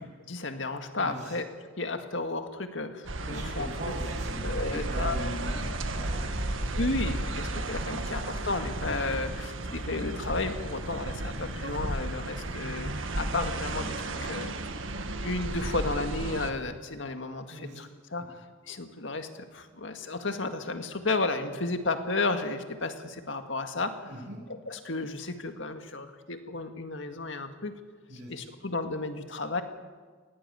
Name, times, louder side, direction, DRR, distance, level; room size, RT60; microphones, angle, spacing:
voice 1, 0.3-1.4 1.8-3.7 4.4-5.1 6.8-12.9 13.2-14.5 15.2-18.4 18.7-24.0 24.7-27.7 28.3-29.6, left 3 dB, 65° left, 7 dB, 2.0 m, -33 dB
voice 2, 1.0-1.4 3.2-7.3 11.5-11.6 17.5-17.8 18.2-18.3 24.0-24.4 28.1-28.5, right 1 dB, 60° right, -4 dB, 5.5 m, -41 dB
sound 1, 3.1-16.5, right 2 dB, 75° right, 1.7 m, -34 dB
Purr, 6.7-7.8 8.4-9.5 10.2-12.3, left 1 dB, 45° left, 1.4 m, -40 dB
19.5 x 17.0 x 9.4 m, 1.5 s
head